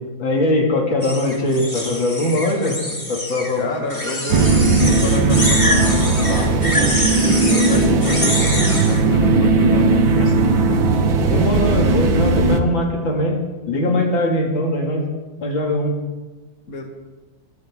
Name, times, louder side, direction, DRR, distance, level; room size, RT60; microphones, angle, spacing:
voice 1, 0.2-2.8 3.1-3.6 7.5-7.7 11.3-13.4 13.7-15.0 15.4-15.9, left 1 dB, 80° left, 0 dB, 3.2 m, -21 dB
sound 1, 1.0-3.5 3.9-9.0, left 1 dB, 15° left, 2.4 m, -25 dB
voice 2, 3.5-6.6 7.1-10.5 16.7-16.8, left 2 dB, 45° left, 2 dB, 2.2 m, -29 dB
sound 2, 4.3-12.6, right 3 dB, 85° right, 1.9 m, -17 dB
sound 3, 6.3-11.9, equal, 25° right, 5.0 m, -27 dB
23.5 x 14.5 x 3.7 m, 1.2 s
omnidirectional pair, 2.1 m